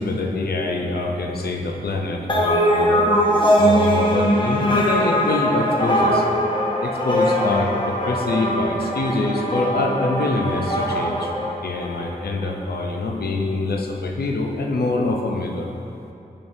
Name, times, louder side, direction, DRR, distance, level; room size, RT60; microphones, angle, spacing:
voice 1, 0.0-3.1 3.5-6.3 6.8-11.3 11.6-15.7, left 2 dB, 85° left, 1 dB, 0.5 m, -24 dB
sound 1, 2.3-12.1, equal, 30° left, 0.8 m, -21 dB
6.7 x 5.2 x 2.7 m, 2.7 s
wide cardioid pair, 80°, 16 cm